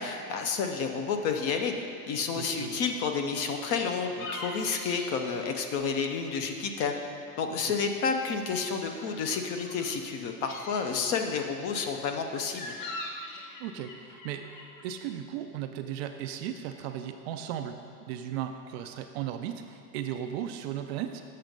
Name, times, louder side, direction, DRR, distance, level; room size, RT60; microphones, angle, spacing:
voice 1, 0.0-1.7 2.1-7.0 7.4-12.7, left 5 dB, 30° left, 5 dB, 0.5 m, -30 dB
voice 2, 2.3-2.8 7.6-7.7 13.6-14.5 14.8-17.8 18.1-21.2, right 10 dB, 45° right, 7 dB, 0.4 m, -36 dB
sound 1, 3.7-6.5 6.8-7.6 7.9-9.9 10.3-10.8 11.3-14.9, left 2 dB, 60° left, 1.3 m, -43 dB
7.6 x 6.1 x 5.2 m, 2.4 s
supercardioid pair, 135°, 47 cm